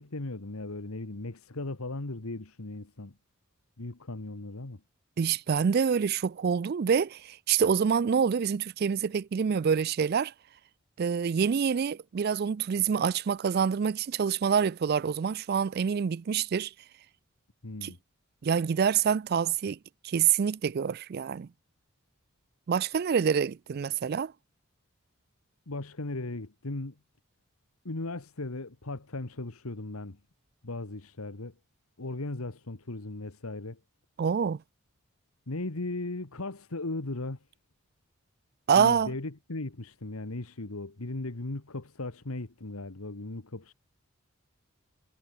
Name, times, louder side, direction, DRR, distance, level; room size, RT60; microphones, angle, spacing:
voice 1, 0.0-3.1 3.8-4.8 17.6-18.0 25.7-26.9 27.8-30.2 30.6-31.5 32.0-33.8 35.5-37.4 38.7-43.7, left 2 dB, 90° left, 1.6 m, -37 dB
voice 2, 5.2-10.3 11.0-16.7 17.8-17.9 18.4-19.8 20.0-21.5 22.7-24.3 34.2-34.6 38.7-39.1, right 7 dB, 45° right, 0.3 m, -26 dB
head